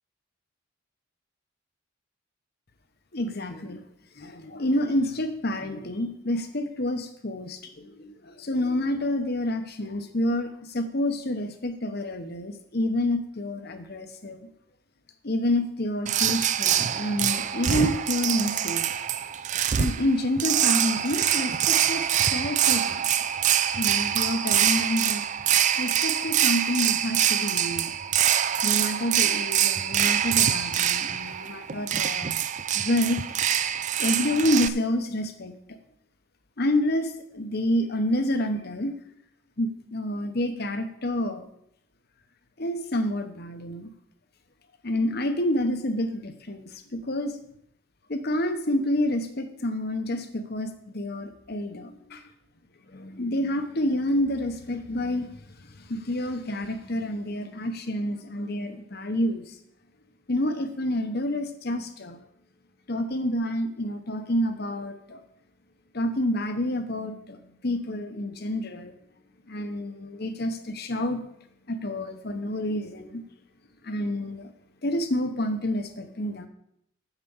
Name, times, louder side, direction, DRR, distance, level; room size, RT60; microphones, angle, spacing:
voice 1, 3.1-3.8 4.2-14.4 15.2-18.9 19.8-23.0 23.8-25.2 25.8-27.9 28.6-32.4 32.7-33.2 34.0-35.6 36.6-38.9 39.6-41.5 42.6-43.9 44.8-47.4 48.1-52.3 52.9-59.5 60.3-62.2 62.9-65.2 65.9-68.9 69.5-71.2 71.7-73.2 73.8-74.5 74.8-76.5, left 1 dB, 50° left, 9 dB, 1.0 m, -28 dB
sound 1, 16.1-34.7, right 10 dB, 35° right, 0.3 m, -25 dB
8.1 x 6.8 x 7.1 m, 0.75 s
head